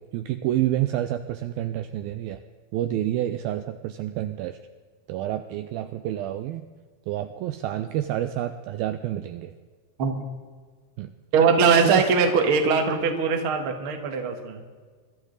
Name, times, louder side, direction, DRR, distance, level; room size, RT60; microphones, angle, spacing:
voice 1, 0.0-2.4 2.7-4.6 5.1-6.6 7.1-9.5 11.0-11.1 11.8-12.1, right 13 dB, 85° right, 9 dB, 2.2 m, -28 dB
voice 2, 10.0-10.3 11.3-14.6, right 5 dB, 50° right, 4 dB, 1.6 m, -21 dB
23.0 x 13.0 x 4.0 m, 1.5 s
omnidirectional pair, 4.8 m